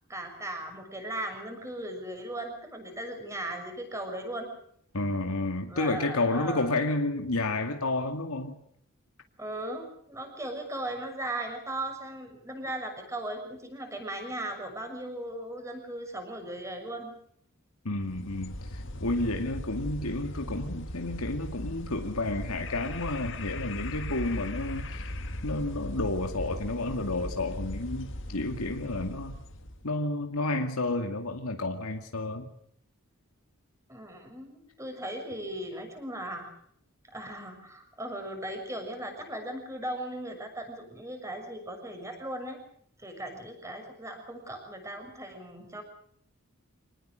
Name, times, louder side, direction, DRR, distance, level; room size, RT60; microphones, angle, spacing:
voice 1, 0.1-4.5 5.7-6.7 9.4-17.2 33.9-36.5 37.1-42.6 43.0-45.8, right 1 dB, 15° right, 5 dB, 6.6 m, -37 dB
voice 2, 4.9-8.5 17.8-25.0 25.4-29.4 29.8-32.5, left 2 dB, 85° left, 4 dB, 2.4 m, -31 dB
sound 1, 18.0-29.9, left 1 dB, 55° left, 2.1 m, -38 dB
26.5 x 19.5 x 6.5 m, 0.68 s
head